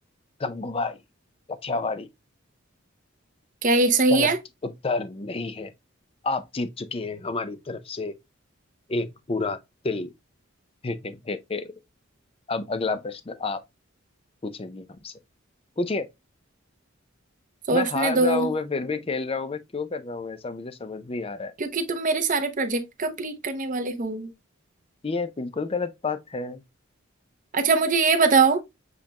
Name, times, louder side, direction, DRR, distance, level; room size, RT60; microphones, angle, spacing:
voice 1, 0.4-1.0 1.5-2.1 4.1-4.3 4.6-5.7 6.2-8.1 8.9-9.6 9.8-10.1 10.8-11.7 12.5-13.6 14.4-15.1 15.8-16.1 17.7-21.5 25.0-26.6, left 3 dB, 25° left, 0.5 m, -29 dB
voice 2, 3.6-4.4 17.7-18.5 21.6-24.3 27.5-28.6, right 3 dB, 40° right, 0.8 m, -22 dB
7.3 x 2.5 x 2.9 m
head